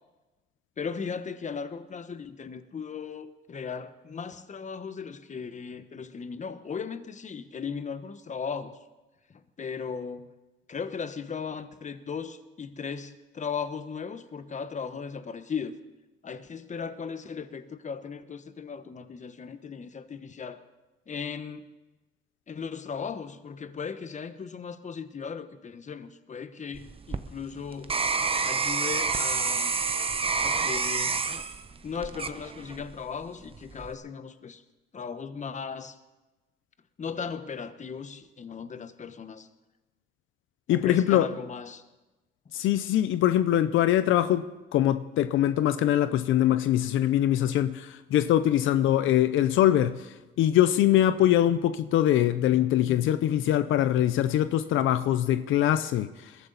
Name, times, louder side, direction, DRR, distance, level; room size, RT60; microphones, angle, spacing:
voice 1, 0.8-8.8 9.3-10.3 10.7-15.7 16.2-20.6 21.1-21.7 22.5-27.9 28.4-29.8 30.4-31.2 31.8-34.6 34.9-36.0 37.0-39.5 40.7-41.8, left 6 dB, 35° left, 1.1 m, -37 dB
sound 1, 26.7-33.0 33.5-33.9, right 4 dB, 30° right, 0.9 m, -28 dB
voice 2, 40.7-41.3 42.5-56.4, left 12 dB, 80° left, 0.6 m, -23 dB
21.5 x 13.5 x 4.1 m
cardioid pair, 90°, 20 cm